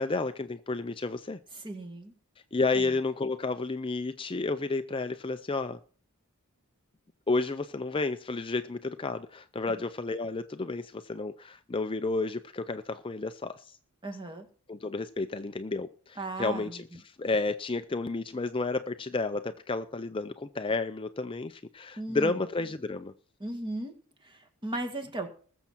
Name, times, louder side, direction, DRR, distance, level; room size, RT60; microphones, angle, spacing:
voice 1, 0.0-1.4 2.5-5.8 7.3-13.7 14.7-23.1, left 3 dB, 25° left, 0.5 m, -31 dB
voice 2, 1.5-2.1 2.7-2.9 14.0-14.5 16.2-16.8 22.0-22.3 23.4-23.9 24.2-25.3, right 2 dB, 20° right, 1.9 m, -36 dB
20.5 x 7.3 x 4.5 m
head